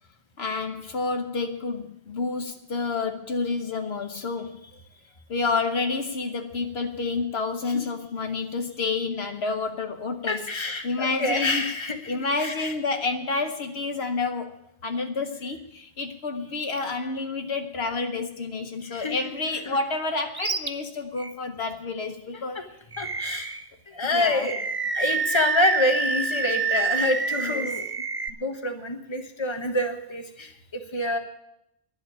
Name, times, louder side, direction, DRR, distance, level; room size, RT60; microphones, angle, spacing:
voice 1, 0.4-4.6 5.3-10.5 10.8-11.6 12.1-14.5 14.8-22.6 24.1-24.5 27.4-27.7, left 4 dB, 70° left, 6 dB, 1.2 m, -29 dB
voice 2, 10.3-12.7 18.8-19.1 19.5-19.8 22.5-22.6 23.0-23.6 23.9-24.6 24.9-27.9 28.4-31.2, left 2 dB, 25° left, 5 dB, 1.3 m, -27 dB
Animal, 20.3-20.7 21.2-21.3 22.9-23.7 24.3-28.3, right 5 dB, 30° right, 0.5 m, -27 dB
11.0 x 7.7 x 10.0 m, 0.82 s
omnidirectional pair, 1.1 m